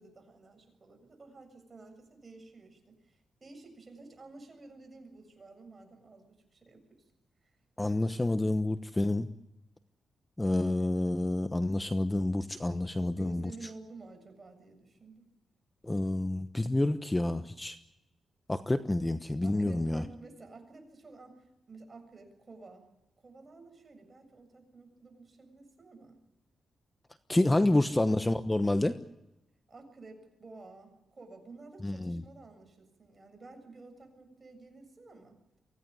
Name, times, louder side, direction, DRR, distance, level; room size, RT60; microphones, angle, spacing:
voice 1, 0.0-7.1 7.4-7.6 13.1-15.3 19.4-22.9 23.2-26.2 27.6-27.7 29.7-35.4, right 3 dB, 35° right, 5 dB, 7.4 m, -52 dB
voice 2, 7.8-9.3 10.4-13.5 15.8-17.8 18.5-20.0 27.3-29.0 31.8-32.2, left 1 dB, 15° left, 10 dB, 1.1 m, -28 dB
24.5 x 17.0 x 9.7 m, 0.94 s
cardioid pair, 85°, 0 cm